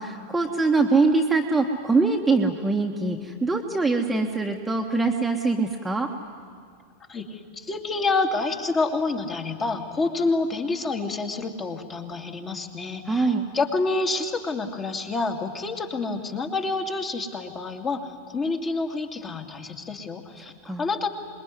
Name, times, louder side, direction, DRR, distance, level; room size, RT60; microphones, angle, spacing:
voice 1, 0.0-6.1 13.1-13.4 20.6-20.9, right 3 dB, 5° right, 2 dB, 1.5 m, -23 dB
voice 2, 7.1-20.5 20.8-21.1, left 3 dB, 25° left, 3 dB, 2.5 m, -28 dB
26.0 x 21.0 x 9.7 m, 2.2 s
figure-of-eight pair, 90°, 0 cm